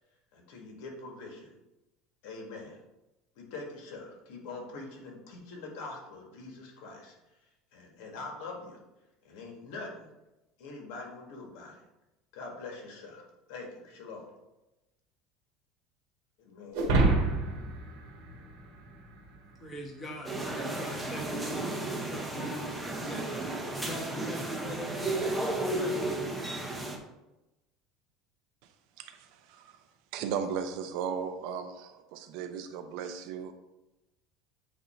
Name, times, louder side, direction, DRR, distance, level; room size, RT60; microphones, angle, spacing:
voice 1, 0.3-1.5 2.2-2.8 3.3-7.1 7.7-8.8 9.2-10.1 10.6-11.8 12.3-13.2 13.5-14.3 16.4-16.8, left 3 dB, 75° left, 1 dB, 1.6 m, -43 dB
sound 1, 16.7-19.3, right 3 dB, 85° right, 1.6 m, -27 dB
voice 2, 19.5-26.2, right 1 dB, 20° left, -1 dB, 1.2 m, -42 dB
sound 2, 20.2-27.0, right 2 dB, 5° right, 0.7 m, -33 dB
voice 3, 29.0-29.8 30.1-33.5, right 7 dB, 60° right, 8 dB, 0.6 m, -36 dB
8.1 x 2.7 x 4.3 m, 0.98 s
cardioid pair, 165°, 0 cm